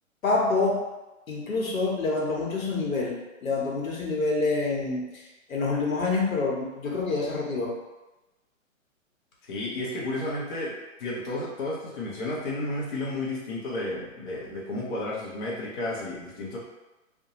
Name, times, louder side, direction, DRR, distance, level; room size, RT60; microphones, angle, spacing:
voice 1, 0.2-0.8 1.3-7.7, left 3 dB, 80° left, -2 dB, 0.9 m, -27 dB
voice 2, 9.5-10.7 11.0-16.6, left 2 dB, 40° left, -6 dB, 0.6 m, -32 dB
2.5 x 2.2 x 2.8 m, 1.1 s
hypercardioid pair, 150°, 40 cm